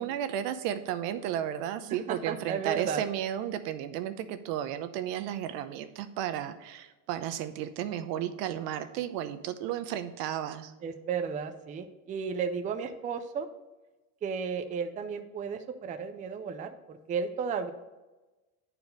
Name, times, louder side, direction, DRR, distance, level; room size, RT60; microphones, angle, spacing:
voice 1, 0.0-10.7, right 10 dB, 85° right, 10 dB, 0.9 m, -33 dB
voice 2, 1.9-3.0 10.8-13.5 14.2-17.7, right 6 dB, 20° right, 7 dB, 0.4 m, -34 dB
9.6 x 4.7 x 5.2 m, 1.1 s
cardioid pair, 145°, 47 cm